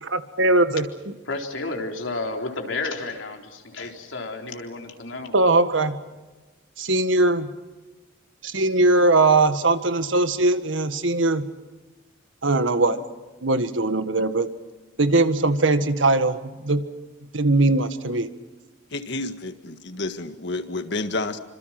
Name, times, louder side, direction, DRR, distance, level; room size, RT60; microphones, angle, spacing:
voice 1, 0.0-0.9 5.3-6.0 6.8-7.5 8.4-11.5 12.4-13.0 13.4-14.5 15.0-16.9 17.3-18.3, right 2 dB, 80° right, 10 dB, 1.7 m, -20 dB
voice 2, 1.2-5.3, left 3 dB, 85° left, 3 dB, 3.9 m, -31 dB
voice 3, 18.9-21.4, left 2 dB, 65° left, 9 dB, 1.8 m, -30 dB
27.5 x 26.0 x 6.0 m, 1.2 s
head